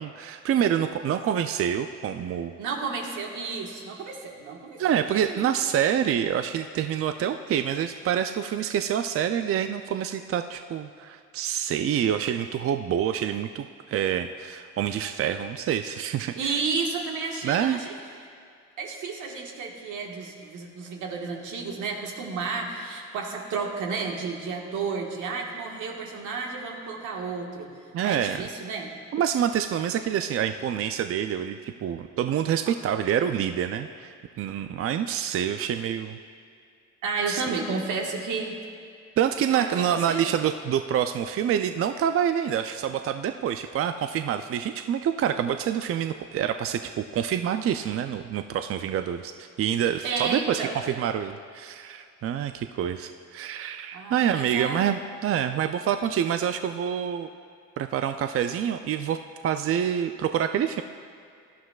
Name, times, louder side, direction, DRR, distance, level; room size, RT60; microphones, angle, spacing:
voice 1, 0.0-2.5 4.8-16.6 17.4-17.8 27.9-28.5 29.1-36.2 37.3-37.6 39.2-57.3 57.8-59.2 59.4-60.8, right 9 dB, 50° right, 8 dB, 0.4 m, -27 dB
voice 2, 2.6-4.8 5.1-5.4 16.4-17.9 18.8-27.7 28.0-28.9 37.0-38.6 39.5-40.3 50.0-50.8 53.9-54.8, right 4 dB, 85° right, 0 dB, 1.6 m, -32 dB
17.0 x 11.5 x 2.4 m, 2.3 s
cardioid pair, 90°, 30 cm